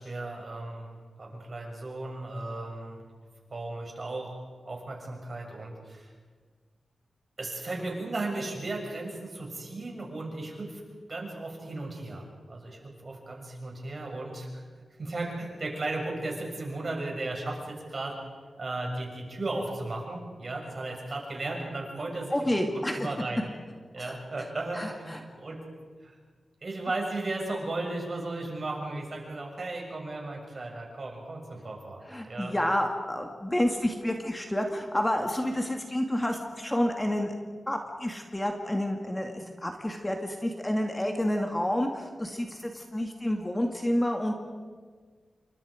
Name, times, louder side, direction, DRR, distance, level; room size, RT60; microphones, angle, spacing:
voice 1, 0.0-3.0 3.5-6.1 7.4-10.8 11.1-14.5 15.0-18.1 18.6-23.4 23.9-25.6 26.0-26.2 26.6-32.5, right 2 dB, 45° right, 0 dB, 6.7 m, -35 dB
voice 2, 22.3-23.1 24.0-24.2 24.7-25.2 32.1-37.3 37.7-44.4, left 1 dB, 15° left, 3 dB, 2.1 m, -29 dB
28.5 x 24.5 x 5.1 m, 1.6 s
wide cardioid pair, 95°, 0 cm